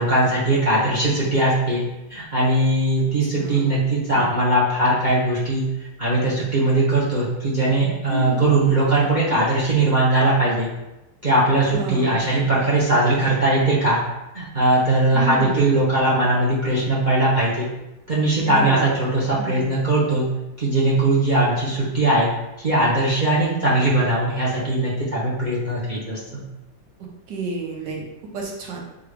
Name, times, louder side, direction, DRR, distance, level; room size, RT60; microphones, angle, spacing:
voice 1, 0.0-1.8 2.1-5.6 6.0-10.7 11.2-14.0 14.3-17.7 18.1-20.2 20.6-22.3 22.6-26.4, right 2 dB, 50° right, -6 dB, 0.5 m, -20 dB
voice 2, 3.2-3.7 4.1-4.3 8.1-8.4 11.7-12.2 15.1-15.8 18.4-18.9 19.3-19.7 23.4-23.5 27.3-28.1 28.3-28.8, right 3 dB, 75° right, -1 dB, 1.5 m, -30 dB
3.9 x 3.4 x 3.3 m, 0.95 s
omnidirectional pair, 1.9 m